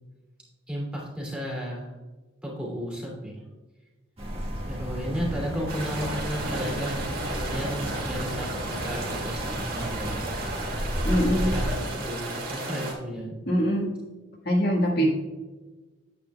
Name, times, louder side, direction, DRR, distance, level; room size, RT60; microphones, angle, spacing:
voice 1, 0.7-1.9 2.4-3.4 4.6-10.3 11.2-13.4 14.9-15.1, equal, 5° right, -4 dB, 2.5 m, -33 dB
sound 1, 4.2-11.6, equal, 30° right, 1.8 m, -34 dB
sound 2, 5.0-10.4, equal, 80° right, 1.8 m, -39 dB
sound 3, 5.7-12.9, right 2 dB, 45° right, 2.1 m, -34 dB
voice 2, 11.0-11.5 13.5-13.9 14.4-15.1, equal, 50° left, -1 dB, 1.6 m, -23 dB
9.1 x 8.8 x 2.3 m, 1.2 s
head